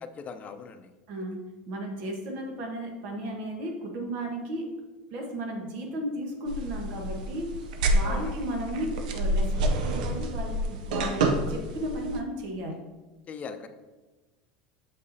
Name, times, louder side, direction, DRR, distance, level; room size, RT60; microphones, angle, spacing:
voice 1, 0.0-0.9 8.0-8.3 13.3-13.7, left 5 dB, 35° left, 8 dB, 0.6 m, -40 dB
voice 2, 1.1-4.8 5.1-7.6 7.8-12.8, right 1 dB, 65° right, 2 dB, 1.2 m, -34 dB
sound 1, 6.5-12.2, right 1 dB, 85° right, 0.6 m, -28 dB
6.8 x 5.4 x 2.7 m, 1.2 s
supercardioid pair, 105°, 4 cm